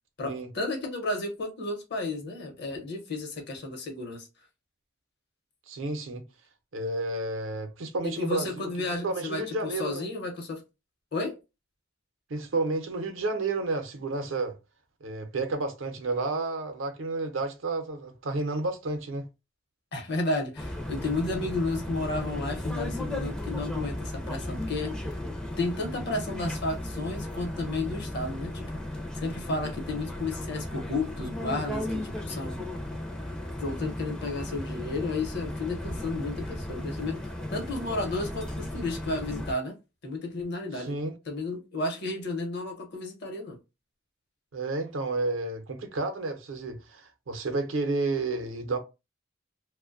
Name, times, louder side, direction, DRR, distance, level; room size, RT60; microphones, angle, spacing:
voice 1, 0.2-4.3 8.0-10.6 11.1-11.4 19.9-25.1 25.6-28.7 29.2-32.6 33.6-39.7 40.0-40.9 41.3-43.6, left 2 dB, 60° left, 0.8 m, -32 dB
voice 2, 5.7-6.2 6.7-8.7 9.0-10.1 12.3-14.5 15.0-19.3 40.7-41.1 44.5-48.8, right 3 dB, 85° right, 0.6 m, -31 dB
sound 1, 20.6-39.5, left 1 dB, 5° left, 0.4 m, -35 dB
2.5 x 2.1 x 2.4 m
head